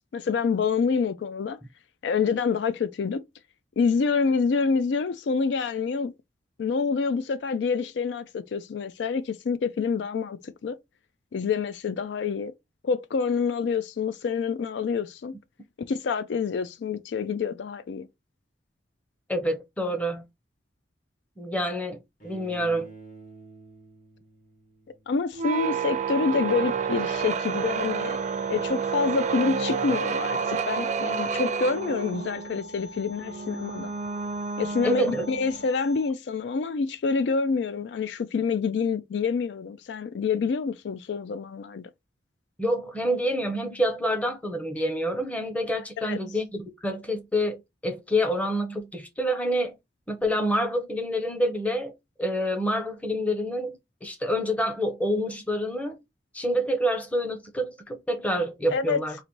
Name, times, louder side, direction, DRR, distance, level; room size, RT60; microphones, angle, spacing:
voice 1, 0.1-1.6 2.0-3.2 3.8-6.1 6.6-10.8 11.3-12.5 12.8-15.3 15.9-18.1 25.1-28.2 28.5-33.9 34.6-41.9 46.0-46.2 58.7-59.0, left 5 dB, 70° left, 0.4 m, -27 dB
voice 2, 19.3-20.2 21.4-22.9 34.8-35.2 42.6-49.7 50.1-51.9 52.2-56.0 56.3-59.2, equal, 10° left, 0.7 m, -27 dB
Bowed string instrument, 22.2-25.3, right 4 dB, 45° left, 1.3 m, -49 dB
sound 1, 25.3-35.7, right 6 dB, 40° right, 0.4 m, -30 dB
sound 2, 27.1-36.1, equal, 90° left, 1.9 m, -45 dB
4.1 x 2.5 x 3.0 m
head